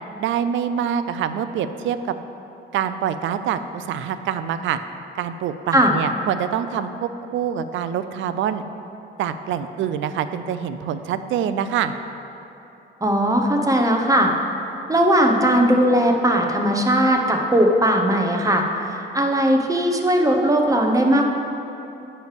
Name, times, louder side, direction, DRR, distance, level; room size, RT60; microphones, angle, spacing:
voice 1, 0.2-2.0 2.7-4.8 5.2-8.6 9.2-12.0, right 8 dB, 75° right, 11 dB, 0.4 m, -25 dB
voice 2, 13.0-14.3 14.9-18.6 18.9-21.3, equal, 15° right, 2 dB, 0.9 m, -18 dB
9.4 x 3.3 x 6.5 m, 3.0 s
cardioid pair, 90°, 20 cm